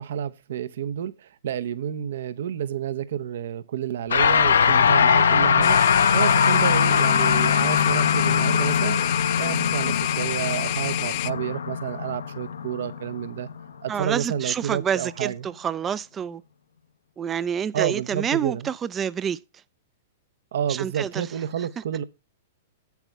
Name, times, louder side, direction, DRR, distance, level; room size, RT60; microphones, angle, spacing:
voice 1, 0.0-9.0 9.4-13.5 13.8-15.5 17.7-18.7 20.5-22.0, right 9 dB, 65° right, 0.8 m, -30 dB
sound 1, 4.1-13.6, left 7 dB, 75° left, 0.8 m, -21 dB
sound 2, 5.6-11.3, left 21 dB, 50° left, 0.4 m, -30 dB
voice 2, 13.9-16.4 17.2-19.4 20.7-21.3 21.6-21.7, right 8 dB, 25° right, 0.4 m, -28 dB
8.3 x 8.0 x 3.4 m
hypercardioid pair, 110°, 0 cm